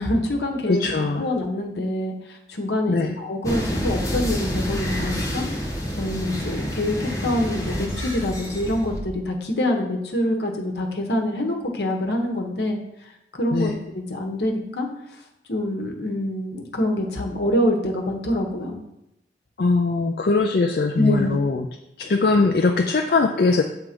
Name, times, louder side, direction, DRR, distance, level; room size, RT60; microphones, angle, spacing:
voice 1, 0.0-5.4 6.0-12.8 13.3-14.9 15.5-18.8 20.9-21.4, left 1 dB, 75° left, 2 dB, 1.1 m, -25 dB
voice 2, 0.7-1.3 2.9-3.1 13.5-13.8 19.6-21.7 22.0-23.6, left 3 dB, 55° left, 3 dB, 0.4 m, -21 dB
sound 1, 3.4-9.0, equal, 20° left, 0.9 m, -28 dB
7.2 x 3.4 x 5.1 m, 0.88 s
head